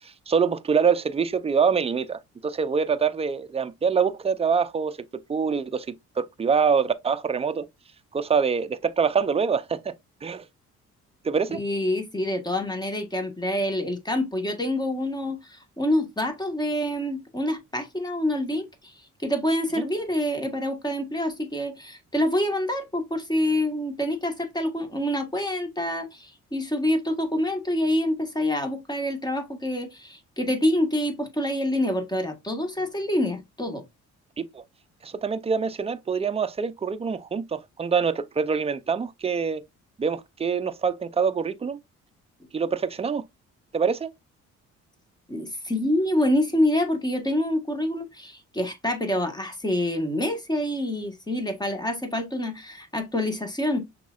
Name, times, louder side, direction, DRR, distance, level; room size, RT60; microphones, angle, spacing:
voice 1, 0.0-5.0 5.3-5.9 6.2-7.7 8.1-9.9 10.2-10.4 11.2-11.6 19.8-19.9 34.4-34.6 35.0-39.6 40.0-41.8 42.5-43.2 43.7-44.1, right 6 dB, 20° right, 0.5 m, -25 dB
voice 2, 11.5-18.9 19.2-33.8 45.3-53.8, left 1 dB, 15° left, 1.4 m, -26 dB
5.9 x 3.7 x 2.4 m
cardioid pair, 90°, 30 cm